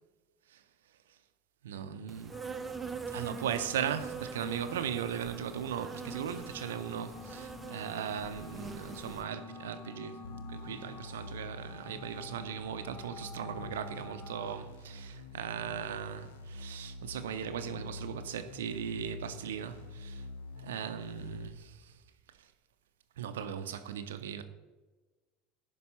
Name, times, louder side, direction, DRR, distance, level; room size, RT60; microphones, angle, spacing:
voice 1, 1.6-2.4 3.1-10.2 10.5-20.3 20.6-22.0 22.4-22.5 23.2-24.4, right 9 dB, 75° right, 0.5 m, -38 dB
Insect, 2.1-9.3, right 5 dB, 20° right, 0.6 m, -43 dB
sound 1, 2.3-14.6, left 5 dB, 40° left, 1.1 m, -50 dB
sound 2, 10.2-21.5, left 2 dB, 70° left, 0.8 m, -46 dB
11.0 x 5.3 x 4.2 m
figure-of-eight pair, 70°, 0 cm